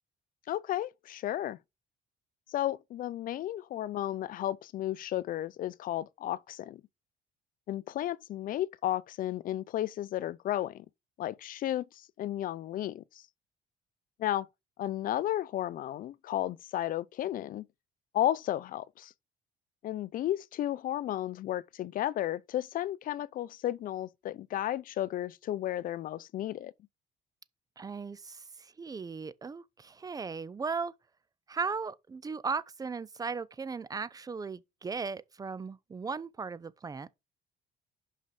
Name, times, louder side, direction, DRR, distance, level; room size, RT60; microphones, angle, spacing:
voice 1, 0.5-1.6 2.5-6.8 7.7-10.9 11.2-13.2 14.2-14.5 14.8-17.7 18.1-19.1 19.8-26.7, left 13 dB, 55° left, 0.5 m, -33 dB
voice 2, 27.8-30.9 31.5-37.1, right 5 dB, 20° right, 0.5 m, -37 dB
5.6 x 5.4 x 4.8 m
cardioid pair, 110°, 17 cm